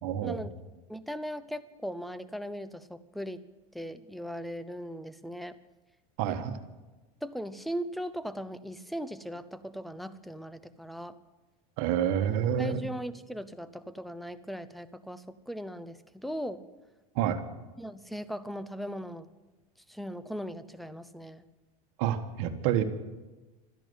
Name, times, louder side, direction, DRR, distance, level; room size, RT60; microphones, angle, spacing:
voice 1, 0.0-0.4 6.2-6.6 11.8-12.8 17.1-17.4 22.0-22.8, right 10 dB, 65° right, 8 dB, 1.4 m, -28 dB
voice 2, 0.9-3.4 3.7-5.6 6.2-6.4 7.2-11.2 12.6-16.6 17.8-19.3 19.9-21.4, equal, ahead, 14 dB, 0.8 m, -38 dB
13.5 x 10.5 x 9.5 m, 1.2 s
supercardioid pair, 110°, 19 cm